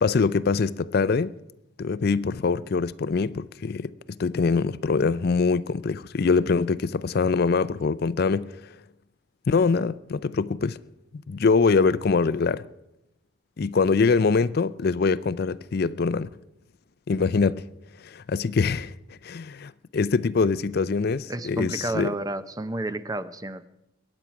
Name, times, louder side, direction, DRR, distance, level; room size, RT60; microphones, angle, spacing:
voice 1, 0.0-1.4 1.8-3.9 4.2-8.5 9.5-10.8 11.1-12.7 13.6-16.3 17.1-17.7 18.0-22.1, left 4 dB, 50° left, 0.4 m, -24 dB
voice 2, 21.3-23.7, right 2 dB, 20° right, 0.6 m, -31 dB
22.0 x 8.9 x 5.9 m
head